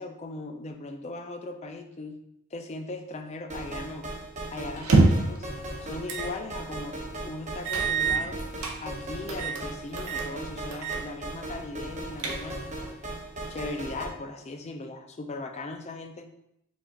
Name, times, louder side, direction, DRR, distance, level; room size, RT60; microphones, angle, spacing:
voice 1, 0.0-2.2 2.5-4.1 4.5-5.5 5.8-8.4 8.8-12.6 13.5-16.3, left 2 dB, 30° left, 4 dB, 0.4 m, -38 dB
sound 1, 3.5-14.1, right 1 dB, 30° right, 0.6 m, -38 dB
sound 2, 4.8-5.4 6.1-6.3 6.7-6.8 7.7-8.8 9.3-9.6 10.0-10.3 10.7-11.0 11.3-11.4 11.9-12.7, right 3 dB, 80° right, 0.6 m, -25 dB
5.0 x 2.4 x 3.7 m, 0.78 s
head